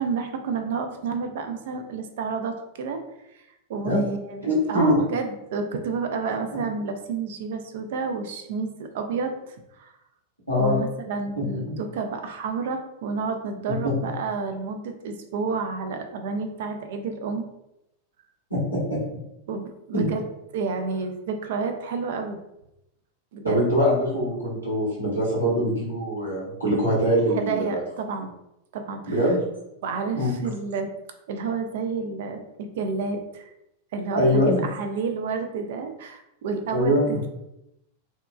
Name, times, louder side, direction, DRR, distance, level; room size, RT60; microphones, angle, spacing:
voice 1, 0.0-3.0 3.3-3.4 3.7-9.9 10.6-17.4 19.5-20.2 20.5-22.4 23.3-23.6 27.3-28.3 28.7-29.2 29.8-30.9 31.3-33.5 33.9-37.3, right 4 dB, 55° right, 6 dB, 0.3 m, -30 dB
voice 2, 4.4-5.0 10.5-10.8 11.7-11.8 18.5-19.0 19.9-20.1 23.4-27.8 29.1-29.4 30.1-30.4 34.1-34.6 36.7-37.2, equal, 85° right, -8 dB, 1.1 m, -23 dB
2.9 x 2.2 x 2.2 m, 0.86 s
figure-of-eight pair, 90°, 0 cm